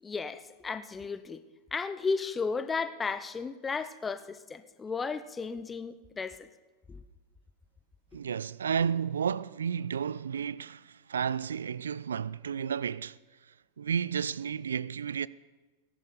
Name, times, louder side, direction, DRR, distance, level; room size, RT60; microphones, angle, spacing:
voice 1, 0.0-1.4 1.7-6.5 6.9-7.0, left 4 dB, 15° left, 0.7 m, -34 dB
voice 2, 8.1-13.2 13.8-15.3, right 7 dB, 70° right, 0.3 m, -32 dB
18.0 x 11.0 x 5.2 m
figure-of-eight pair, 90°, 0 cm